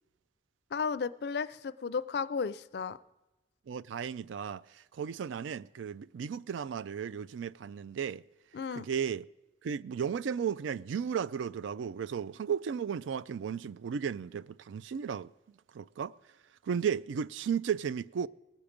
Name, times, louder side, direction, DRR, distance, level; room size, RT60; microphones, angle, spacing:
voice 1, 0.7-3.0 8.5-8.9, left 5 dB, 60° left, 0.4 m, -34 dB
voice 2, 3.7-8.2 8.7-9.2 9.6-15.3 15.7-16.1 16.6-18.3, right 7 dB, 90° right, 0.4 m, -34 dB
19.0 x 7.2 x 5.1 m
head